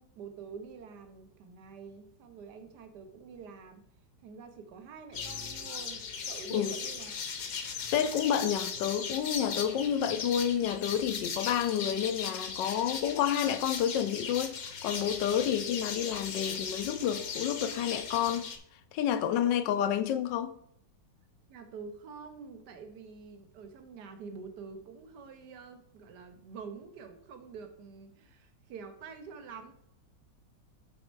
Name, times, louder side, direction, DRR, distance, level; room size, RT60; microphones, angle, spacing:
voice 1, 0.0-3.9 4.2-7.2 21.5-29.7, right 5 dB, 70° right, 1.5 m, -47 dB
sound 1, 5.1-18.6, left 6 dB, 55° left, 1.3 m, -38 dB
voice 2, 7.9-18.5 18.9-20.5, left 9 dB, 75° left, 1.3 m, -29 dB
9.5 x 4.2 x 4.6 m
omnidirectional pair, 2.0 m